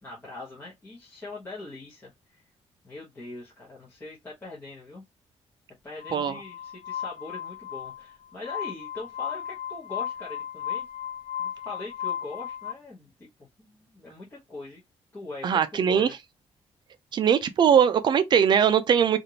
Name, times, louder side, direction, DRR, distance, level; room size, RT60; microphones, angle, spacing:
voice 1, 0.0-2.4 2.8-5.0 5.8-10.8 11.4-14.8 15.1-16.1, left 2 dB, 20° left, 0.9 m, -42 dB
Glass, 6.0-12.7, left 9 dB, 70° left, 0.4 m, -35 dB
voice 2, 15.4-16.1 17.1-19.2, right 8 dB, 45° right, 0.4 m, -21 dB
3.2 x 2.5 x 2.7 m
wide cardioid pair, 175°, 11 cm